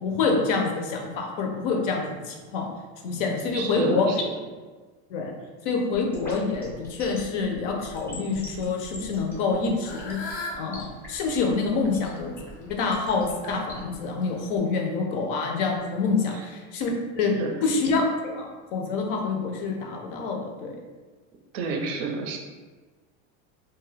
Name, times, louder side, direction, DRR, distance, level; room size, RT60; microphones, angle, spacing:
voice 1, 0.0-2.7 3.0-4.1 5.1-5.3 5.6-10.2 10.6-12.3 12.6-16.9 17.2-17.3 17.6-20.8, left 4 dB, 55° left, 1 dB, 0.5 m, -27 dB
voice 2, 3.5-4.3 17.4-17.5 21.5-22.4, right 4 dB, 60° right, 2 dB, 0.5 m, -29 dB
sound 1, 5.9-14.0, equal, 5° left, 0.5 m, -43 dB
Fowl / Bird, 9.3-14.6, left 2 dB, 85° left, 0.8 m, -41 dB
2.6 x 2.3 x 3.2 m, 1.4 s
cardioid pair, 170°, 32 cm